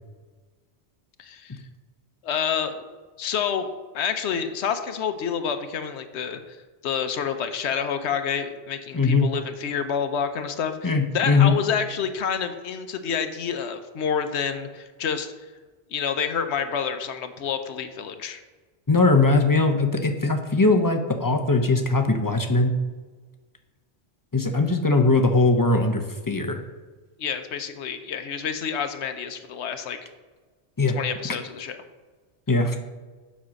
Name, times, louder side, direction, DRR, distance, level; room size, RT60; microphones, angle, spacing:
voice 1, 1.2-1.6 2.2-2.9 3.2-3.7 3.9-6.6 6.8-15.3 15.9-18.4 27.2-30.0 30.9-31.8, left 7 dB, 85° left, 8 dB, 1.0 m, -28 dB
voice 2, 8.9-9.3 10.8-11.5 18.9-22.7 24.3-26.6 30.8-30.9 32.5-32.8, left 3 dB, 20° left, 4 dB, 0.7 m, -20 dB
7.3 x 5.6 x 6.3 m, 1.3 s
omnidirectional pair, 1.1 m